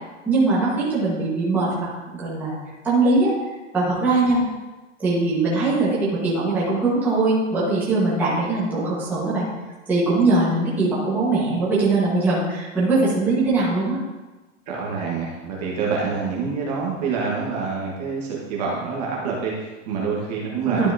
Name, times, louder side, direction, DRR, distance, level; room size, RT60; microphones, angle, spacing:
voice 1, 0.2-2.6 2.8-3.3 3.7-4.4 5.0-9.5 9.9-14.0 20.7-20.9, right 3 dB, 5° right, -9 dB, 1.4 m, -21 dB
voice 2, 14.7-20.9, right 5 dB, 30° right, -4 dB, 1.4 m, -26 dB
12.0 x 5.5 x 2.8 m, 1.2 s
supercardioid pair, 180°, 38 cm